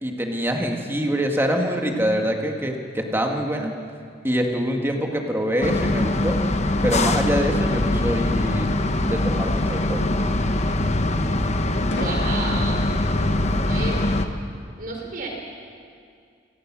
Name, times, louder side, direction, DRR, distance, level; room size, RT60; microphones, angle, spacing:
voice 1, 0.0-3.8 4.2-6.4 6.8-8.7 9.0-10.1 13.5-14.0, equal, 15° right, 2 dB, 2.1 m, -25 dB
sound 1, 5.6-14.3, left 1 dB, 35° left, 1.1 m, -22 dB
sound 2, 10.0-10.3 11.9-12.3, left 1 dB, 70° left, 2.1 m, -33 dB
voice 2, 11.9-12.9 13.7-14.0 14.8-15.3, right 3 dB, 50° right, 0 dB, 4.7 m, -31 dB
29.0 x 17.5 x 6.3 m, 2.2 s
head